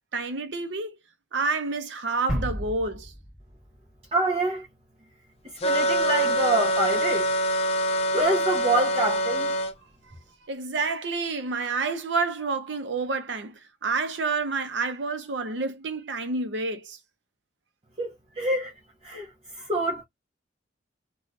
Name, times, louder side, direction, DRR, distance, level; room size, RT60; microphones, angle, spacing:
voice 1, 0.1-1.0 1.3-3.1 10.1-10.2 10.5-17.0, right 3 dB, 85° right, 0.6 m, -29 dB
sound 1, 2.3-5.0, equal, 5° right, 1.2 m, -34 dB
voice 2, 4.1-4.6 5.6-7.3 8.1-9.5 18.0-18.7 19.0-20.0, right 2 dB, 35° right, 0.6 m, -26 dB
sound 2, 5.6-9.7, equal, 35° left, 0.5 m, -25 dB
2.5 x 2.3 x 3.1 m
head